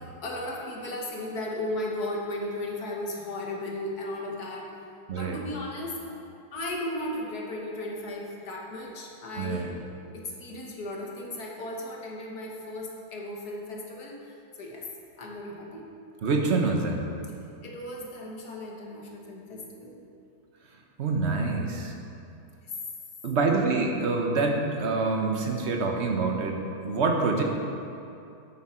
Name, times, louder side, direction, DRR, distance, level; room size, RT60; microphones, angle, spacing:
voice 1, 0.2-4.7 5.1-6.2 6.5-9.8 10.1-14.9 15.2-15.8 17.5-20.0 22.6-22.7, left 1 dB, 65° left, -1 dB, 1.8 m, -36 dB
voice 2, 16.2-17.0 21.0-22.0 23.2-27.4, right 3 dB, 45° right, 2 dB, 1.1 m, -26 dB
10.5 x 8.4 x 4.4 m, 2.7 s
omnidirectional pair, 1.9 m